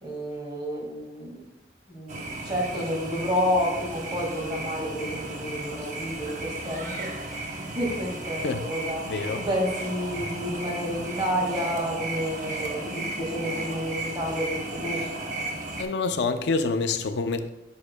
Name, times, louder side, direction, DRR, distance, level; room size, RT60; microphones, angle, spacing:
voice 1, 0.0-1.5 1.9-7.1 7.6-9.0 9.4-15.1, equal, 25° right, 1.9 m, -30 dB
sound 1, 2.1-15.8, right 2 dB, 45° right, 0.9 m, -34 dB
voice 2, 9.1-9.4 15.8-17.5, left 4 dB, 75° left, 0.4 m, -27 dB
9.7 x 6.2 x 2.2 m
head